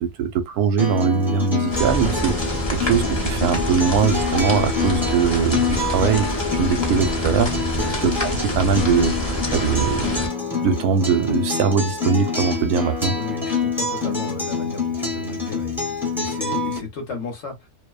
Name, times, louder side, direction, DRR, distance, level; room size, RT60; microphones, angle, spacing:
voice 1, 0.0-2.4 2.7-7.5 8.0-8.1 8.4-10.2 10.6-13.1, right 6 dB, 85° right, 1.1 m, -21 dB
Acoustic guitar, 0.8-16.8, left 4 dB, ahead, 0.8 m, -26 dB
sound 1, 1.7-10.3, left 1 dB, 35° left, 0.4 m, -26 dB
voice 2, 7.7-8.1 13.1-17.6, left 4 dB, 55° left, 1.0 m, -34 dB
2.6 x 2.1 x 2.3 m
omnidirectional pair, 1.6 m